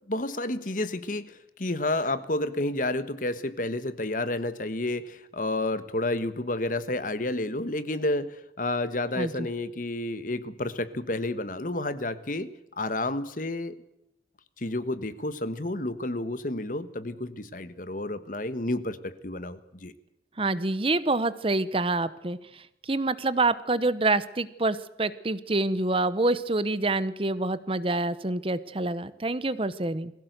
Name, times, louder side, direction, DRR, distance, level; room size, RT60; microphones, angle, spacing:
voice 1, 0.1-12.5 12.8-13.8 14.6-19.9, left 2 dB, 50° left, 13 dB, 1.3 m, -30 dB
voice 2, 20.4-22.4 22.9-30.1, right 2 dB, 30° right, 15 dB, 0.9 m, -26 dB
22.5 x 16.0 x 8.1 m, 0.84 s
head